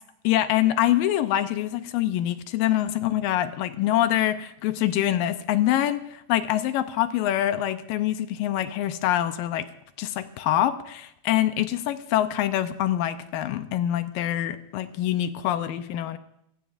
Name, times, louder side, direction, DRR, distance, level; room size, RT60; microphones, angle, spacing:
voice 1, 0.2-9.7 10.0-16.2, left 12 dB, 80° left, 11 dB, 2.3 m, -25 dB
25.0 x 16.5 x 2.5 m, 0.75 s
omnidirectional pair, 4.3 m